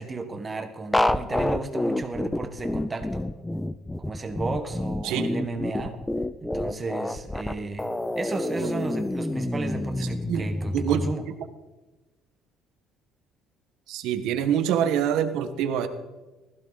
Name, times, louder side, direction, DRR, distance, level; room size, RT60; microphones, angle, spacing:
voice 1, 0.0-3.3 4.0-6.0 6.4-7.9 8.1-11.3, right 3 dB, 15° right, 6 dB, 1.4 m, -34 dB
sound 1, 0.9-11.1, left 1 dB, 5° left, 0.4 m, -28 dB
voice 2, 13.9-15.9, right 9 dB, 70° right, 8 dB, 1.4 m, -25 dB
20.0 x 15.0 x 4.1 m, 1.2 s
cardioid pair, 175°, 0 cm